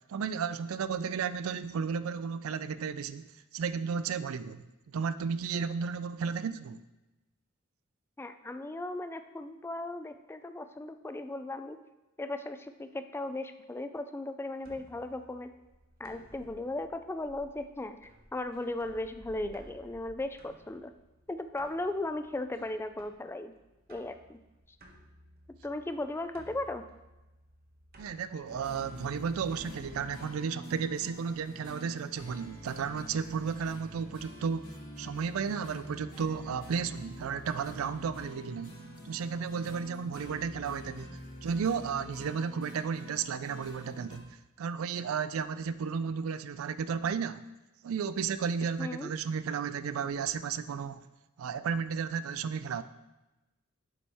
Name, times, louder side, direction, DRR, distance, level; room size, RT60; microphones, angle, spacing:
voice 1, 0.1-6.8 28.0-38.7 39.0-41.1 41.4-47.4 47.8-51.0 51.4-52.8, right 6 dB, 75° right, 14 dB, 0.4 m, -33 dB
voice 2, 8.2-11.8 12.2-15.5 16.0-18.0 18.3-20.9 21.3-23.5 23.9-24.4 25.6-26.9 48.8-49.1, left 2 dB, 10° left, 9 dB, 0.3 m, -37 dB
sound 1, 14.6-31.5, right 1 dB, 45° right, 1.1 m, -57 dB
sound 2, 28.5-44.2, equal, 40° left, 2.1 m, -47 dB
7.2 x 6.8 x 3.5 m, 1.0 s
head